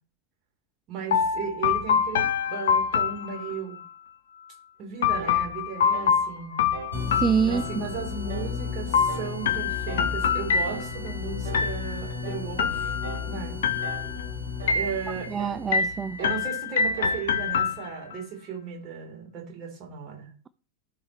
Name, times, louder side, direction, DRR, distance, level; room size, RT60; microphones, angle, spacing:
voice 1, 0.9-3.8 4.8-6.7 7.4-13.0 13.3-13.6 14.7-15.7 16.2-20.3, right 6 dB, 35° right, 4.2 m, -36 dB
sound 1, 1.1-3.9 5.0-8.0 8.9-11.1 11.5-12.2 12.6-13.3 13.6-14.3 14.7-15.3 15.7-18.2, left 6 dB, 60° left, 0.9 m, -26 dB
sound 2, 5.1-5.4 5.9-6.2 6.7-7.0 7.5-7.8 8.3-8.6 9.1-9.4 9.9-10.2 10.7-11.0 11.4-11.8 12.2-12.5 13.0-13.4 13.8-14.2 14.6-14.9 15.4-15.7 16.2-16.5 17.0-17.3, right 4 dB, 70° right, 1.7 m, -40 dB
sound 3, 6.9-16.3, left 5 dB, 90° left, 2.7 m, -34 dB
voice 2, 7.2-7.8 15.3-16.2, right 6 dB, 20° right, 0.4 m, -25 dB
15.0 x 5.5 x 3.3 m
figure-of-eight pair, 90°, 0 cm